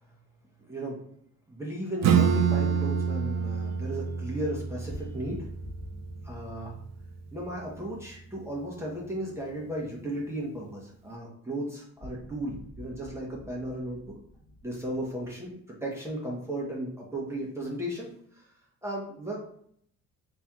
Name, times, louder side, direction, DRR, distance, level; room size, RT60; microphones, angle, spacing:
voice 1, 0.7-1.0 1.5-5.5 6.2-6.8 7.3-14.1 14.6-15.5 15.8-18.5 18.8-19.4, right 1 dB, 10° right, -4 dB, 1.1 m, -35 dB
Acoustic guitar / Strum, 2.0-7.2, right 7 dB, 60° right, 0.5 m, -28 dB
sound 1, 4.9-10.0 10.3-10.4 12.0-15.5, left 1 dB, 15° left, 1.5 m, -48 dB
3.3 x 2.9 x 3.6 m, 0.66 s
cardioid pair, 90°, 30 cm